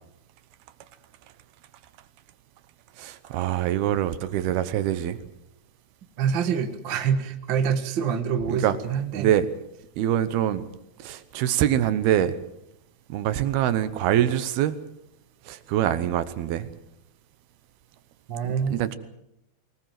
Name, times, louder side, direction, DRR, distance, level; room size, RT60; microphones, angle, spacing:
voice 1, 3.0-5.2 8.5-8.8 9.2-9.5 10.0-10.6 11.0-12.4 13.1-14.8 15.5-16.7 18.4-19.0, right 11 dB, 75° right, 13 dB, 2.8 m, -24 dB
voice 2, 6.2-9.3 18.3-18.8, right 7 dB, 50° right, 7 dB, 1.4 m, -26 dB
23.0 x 19.5 x 7.6 m, 0.84 s
omnidirectional pair, 4.7 m